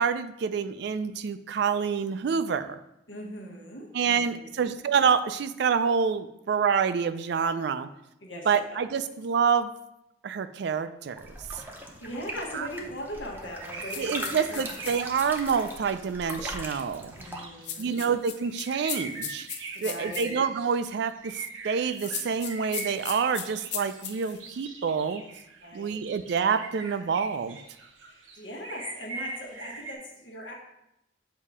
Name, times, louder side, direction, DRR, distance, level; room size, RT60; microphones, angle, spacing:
voice 1, 0.0-2.8 3.9-7.9 8.5-9.7 10.2-11.2 11.5-11.6 12.5-12.7 14.0-17.1 17.8-19.5 19.8-25.2 25.7-27.6, right 6 dB, 60° right, 12 dB, 0.3 m, -27 dB
voice 2, 3.1-4.6 8.2-8.8 11.8-14.8 17.1-18.0 19.7-20.3 25.6-26.0 28.1-30.5, equal, 85° left, -2 dB, 1.3 m, -40 dB
sound 1, 11.2-17.5, right 1 dB, 10° right, 0.6 m, -40 dB
sound 2, 13.6-16.0 16.7-29.9, right 4 dB, 80° right, 0.8 m, -43 dB
sound 3, 13.9-15.7 17.6-20.3 21.9-24.4, left 8 dB, 60° left, 0.6 m, -37 dB
7.1 x 2.8 x 4.8 m, 0.85 s
head